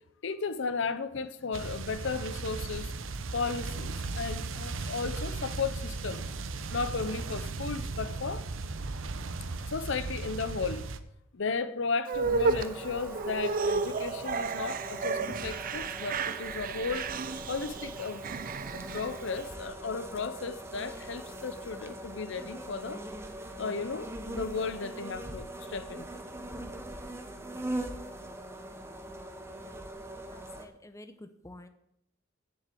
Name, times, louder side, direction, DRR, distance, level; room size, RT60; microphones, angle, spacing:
voice 1, 0.2-2.9 3.3-6.3 6.7-8.4 9.7-10.9 11.3-17.1 17.5-18.2 18.7-23.0 23.6-26.1, left 4 dB, 65° left, 0.7 m, -35 dB
sound 1, 1.5-11.0, right 3 dB, 75° right, 0.8 m, -36 dB
sound 2, 12.1-19.5, right 4 dB, 45° right, 0.5 m, -33 dB
sound 3, 12.2-30.7, right 1 dB, 15° right, 1.1 m, -42 dB
voice 2, 30.2-31.7, left 1 dB, 15° left, 0.8 m, -50 dB
7.9 x 7.5 x 8.4 m
head